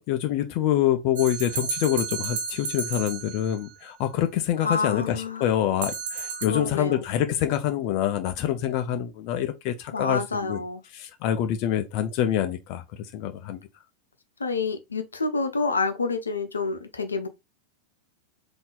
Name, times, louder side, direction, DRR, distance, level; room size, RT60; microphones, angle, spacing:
voice 1, 0.0-10.6 10.9-13.6, left 11 dB, 45° left, 0.5 m, -26 dB
sound 1, 1.2-3.7 5.8-6.5, right 5 dB, 60° right, 1.1 m, -32 dB
voice 2, 4.6-5.4 6.5-7.0 9.9-10.8 14.4-17.3, left 4 dB, 75° left, 0.7 m, -28 dB
3.8 x 2.8 x 3.9 m
figure-of-eight pair, 90°, 0 cm